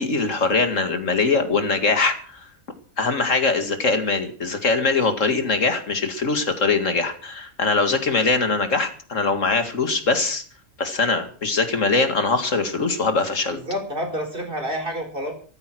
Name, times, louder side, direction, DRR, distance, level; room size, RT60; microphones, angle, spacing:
voice 1, 0.0-2.4 3.0-10.4 10.8-13.6, left 3 dB, 70° left, 8 dB, 2.4 m, -22 dB
voice 2, 13.5-15.3, equal, 40° right, 4 dB, 4.6 m, -28 dB
14.5 x 14.0 x 6.2 m, 0.43 s
omnidirectional pair, 1.4 m